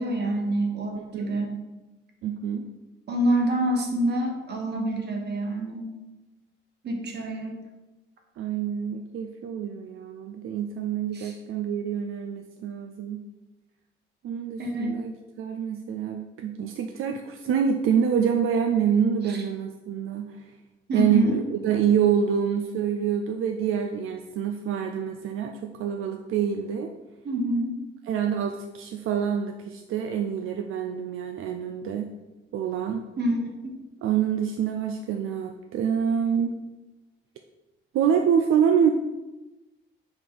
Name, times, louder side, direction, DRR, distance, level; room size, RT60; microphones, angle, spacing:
voice 1, 0.0-1.6 3.1-5.9 6.8-7.6 11.1-11.3 14.6-14.9 19.3-19.4 20.9-21.4 27.2-27.8 33.2-33.4 33.6-33.8, right 1 dB, 55° right, 2 dB, 1.2 m, -26 dB
voice 2, 1.0-1.4 2.2-2.7 8.4-13.2 14.2-20.5 20.9-26.9 28.1-32.1 32.5-33.0 34.0-36.6 37.9-38.9, right 8 dB, 85° right, 5 dB, 0.4 m, -26 dB
5.3 x 4.7 x 3.9 m, 1.1 s
cardioid pair, 140°, 21 cm